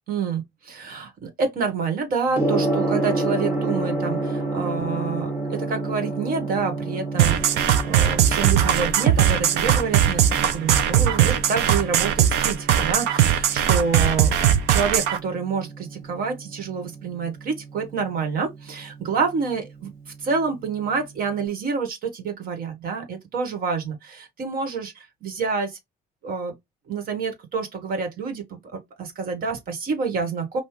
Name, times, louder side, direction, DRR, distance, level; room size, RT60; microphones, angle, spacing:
voice 1, 0.1-7.4 7.8-14.3 14.7-19.9 20.2-25.8 26.2-26.5 26.9-30.6, right 5 dB, 60° right, 1.8 m, -28 dB
Gong, 2.3-21.4, right 2 dB, 15° right, 1.6 m, -31 dB
sound 1, 7.2-15.2, right 10 dB, 85° right, 0.7 m, -19 dB
5.5 x 2.7 x 3.1 m
cardioid pair, 110°, 17 cm